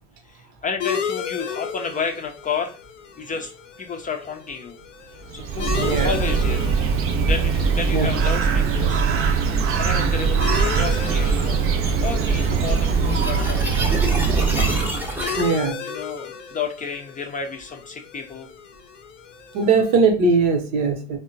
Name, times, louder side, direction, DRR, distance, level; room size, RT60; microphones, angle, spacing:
voice 1, 0.2-2.8 3.2-3.5 3.8-4.8 5.3-6.7 7.2-9.0 9.8-11.7 12.0-14.7 15.9-18.5, left 5 dB, 20° left, 4 dB, 0.5 m, -31 dB
sound 1, 0.8-19.9, left 7 dB, 90° left, 0.5 m, -35 dB
Bird, 5.2-15.2, right 5 dB, 35° right, 0.5 m, -21 dB
voice 2, 5.8-6.1 7.9-8.1 15.4-15.8 19.5-21.2, right 4 dB, 60° right, 5 dB, 0.9 m, -20 dB
sound 2, 7.5-15.6, equal, 5° right, 0.8 m, -32 dB
3.5 x 2.2 x 2.5 m, 0.35 s
hypercardioid pair, 70°, 37 cm